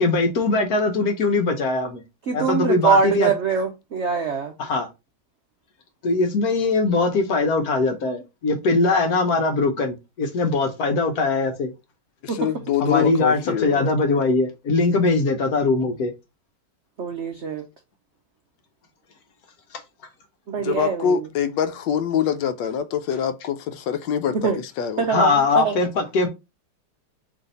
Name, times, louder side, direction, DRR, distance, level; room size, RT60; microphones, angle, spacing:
voice 1, 0.0-2.0 2.3-3.3 4.6-4.9 6.0-11.7 12.8-16.1 25.1-26.3, left 3 dB, 60° left, 1.2 m, -21 dB
voice 2, 2.3-4.5 12.3-12.5 17.0-17.6 20.5-21.2 24.4-24.6 25.0-25.7, right 5 dB, 70° right, 0.6 m, -23 dB
voice 3, 12.2-13.9 20.6-24.5 24.8-25.1, left 8 dB, 80° left, 1.3 m, -24 dB
3.9 x 3.3 x 3.9 m
omnidirectional pair, 2.0 m